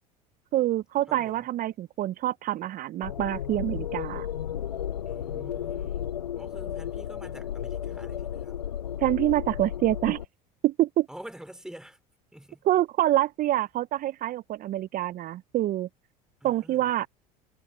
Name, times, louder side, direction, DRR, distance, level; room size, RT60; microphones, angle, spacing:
voice 1, 0.5-4.3 9.0-10.2 10.6-11.1 12.7-15.9 16.4-17.1, right 14 dB, 45° right, 0.8 m, -26 dB
voice 2, 1.1-1.5 5.0-8.7 11.1-12.0 12.3-12.6 16.4-16.9, right 1 dB, 5° right, 4.6 m, -47 dB
sound 1, 3.0-10.2, left 9 dB, 90° left, 0.7 m, -34 dB
hypercardioid pair, 75°, 20 cm